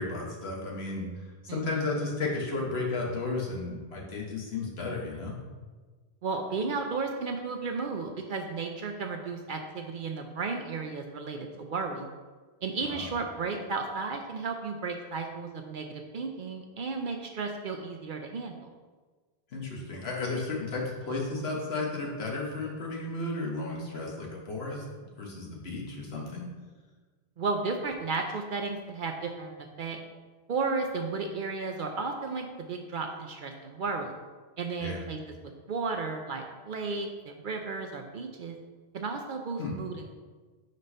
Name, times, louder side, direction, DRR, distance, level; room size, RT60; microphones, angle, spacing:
voice 1, 0.0-5.4 12.9-13.1 19.5-24.8 25.2-26.5 34.8-35.0 39.6-39.7, left 3 dB, 80° left, -1 dB, 1.3 m, -33 dB
voice 2, 6.2-12.1 12.6-18.7 27.4-30.0 30.5-34.2 34.6-38.6 38.9-40.1, right 4 dB, 60° right, 4 dB, 0.7 m, -34 dB
5.3 x 4.1 x 5.3 m, 1.4 s
omnidirectional pair, 1.1 m